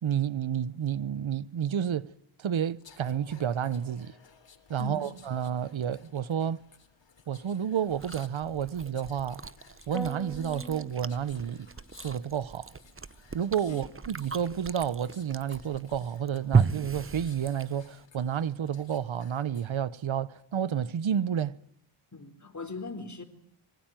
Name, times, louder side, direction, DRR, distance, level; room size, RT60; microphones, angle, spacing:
voice 1, 0.0-2.1 2.4-4.1 4.7-6.6 7.3-9.4 9.9-11.7 12.0-12.7 13.3-21.6, right 8 dB, 75° right, 1.1 m, -30 dB
sound 1, 2.8-19.8 20.2-20.4, left 6 dB, 65° left, 3.5 m, -58 dB
voice 2, 4.8-5.2 13.7-13.9 22.1-23.2, left 3 dB, 35° left, 4.1 m, -40 dB
Chewing mastication, 7.9-18.1, right 5 dB, 25° right, 1.0 m, -34 dB
sound 2, 9.9-11.9, right 1 dB, ahead, 3.0 m, -42 dB
25.5 x 23.5 x 9.1 m
wide cardioid pair, 95°, 48 cm